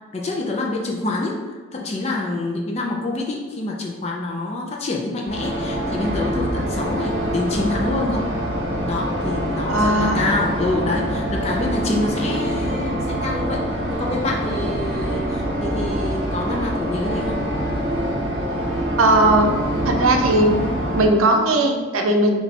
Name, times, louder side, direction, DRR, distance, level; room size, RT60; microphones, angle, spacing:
voice 1, 0.1-8.3 8.9-13.6 13.9-17.4, left 2 dB, 30° left, -1 dB, 0.4 m, -26 dB
sound 1, 5.3-21.0, right 1 dB, 50° right, 1.0 m, -25 dB
voice 2, 9.7-10.3 19.0-19.5 19.9-20.6 20.9-22.4, right 2 dB, 90° right, 4 dB, 0.5 m, -17 dB
4.1 x 2.3 x 4.1 m, 1.3 s
head